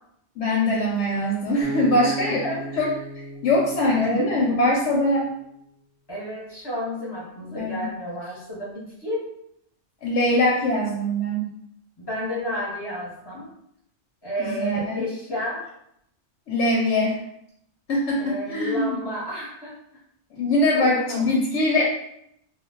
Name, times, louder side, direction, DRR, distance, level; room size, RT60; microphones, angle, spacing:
voice 1, 0.4-2.4 2.8-2.9 3.4-5.3 7.6-7.9 10.0-11.5 14.4-15.0 16.5-17.2 17.9-19.1 20.4-21.8, left 1 dB, 85° left, -3 dB, 0.9 m, -22 dB
Acoustic guitar, 1.6-4.8, right 3 dB, 65° right, 0.8 m, -34 dB
voice 2, 2.0-2.9 3.9-4.3 6.1-9.2 12.0-13.5 14.2-15.7 18.2-19.8 20.7-21.2, equal, 25° left, -6 dB, 0.8 m, -31 dB
2.3 x 2.2 x 3.6 m, 0.75 s
omnidirectional pair, 1.2 m